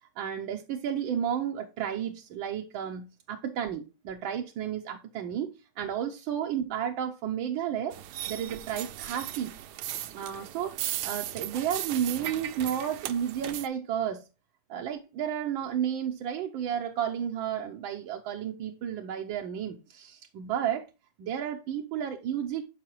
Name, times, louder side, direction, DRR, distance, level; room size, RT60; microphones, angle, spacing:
voice 1, 0.2-5.5 5.8-8.0 8.3-9.5 10.1-10.8 11.0-14.2 14.7-20.9 21.2-22.6, right 9 dB, 85° right, 1.5 m, -32 dB
sound 1, 7.9-13.7, right 12 dB, 70° right, 1.0 m, -37 dB
12.5 x 4.8 x 3.0 m
omnidirectional pair, 2.1 m